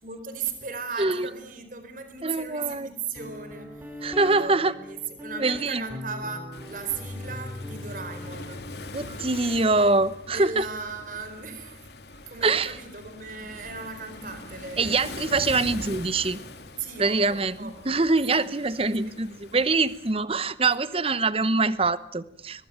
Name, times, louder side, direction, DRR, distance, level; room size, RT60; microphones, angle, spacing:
voice 1, 0.0-8.7 10.2-11.8 12.3-14.9 16.8-18.0 18.3-18.5 19.0-19.2 20.9-21.0, right 5 dB, 50° right, 8 dB, 4.4 m, -37 dB
voice 2, 2.2-2.9 4.0-4.7 5.4-5.8 8.9-10.7 12.4-12.7 14.8-16.4 17.0-22.7, right 3 dB, 35° right, 16 dB, 1.0 m, -24 dB
Guitar, 3.2-12.6, left 1 dB, 10° right, 4.9 m, -41 dB
Waves surf, 6.5-20.1, left 2 dB, 70° left, 2.8 m, -43 dB
Fire, 15.4-18.2 19.0-19.1, equal, 70° right, 4.0 m, -52 dB
23.0 x 20.5 x 8.9 m, 0.70 s
head